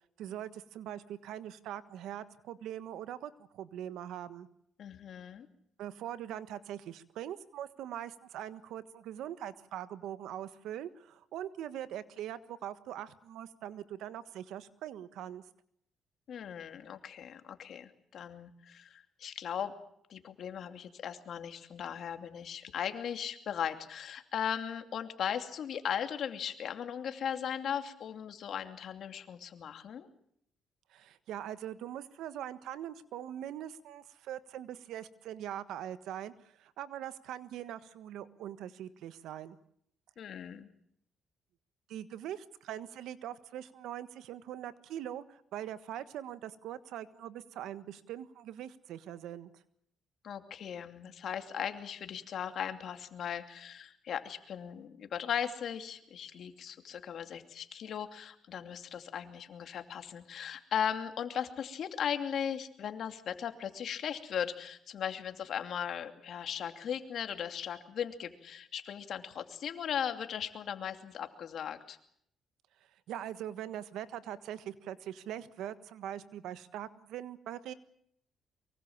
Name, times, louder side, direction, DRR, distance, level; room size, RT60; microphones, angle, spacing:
voice 1, 0.2-4.5 5.8-15.4 30.9-39.6 41.9-49.5 73.1-77.7, right 11 dB, 85° right, 13 dB, 1.4 m, -42 dB
voice 2, 4.8-5.5 16.3-19.7 20.1-30.1 40.2-40.7 50.2-72.0, left 8 dB, 65° left, 8 dB, 2.6 m, -38 dB
24.0 x 23.5 x 7.3 m, 0.69 s
cardioid pair, 90°, 0 cm